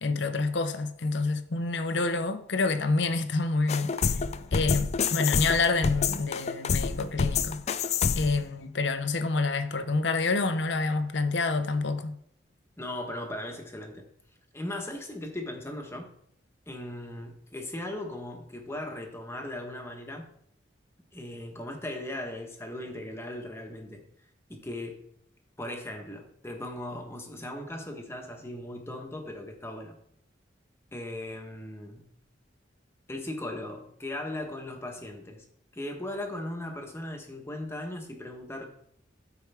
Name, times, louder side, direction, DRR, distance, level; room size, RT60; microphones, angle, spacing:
voice 1, 0.0-3.9 4.5-7.6 8.1-12.2, left 3 dB, 65° left, 0.7 m, -27 dB
sound 1, 3.7-8.4, left 5 dB, 35° left, 0.4 m, -28 dB
voice 2, 12.8-14.1 14.5-16.1 16.7-20.3 21.1-24.0 24.5-25.1 25.6-29.9 30.9-32.1 33.1-35.4 35.7-38.6, left 1 dB, 15° left, 1.2 m, -38 dB
13.0 x 4.7 x 3.5 m
head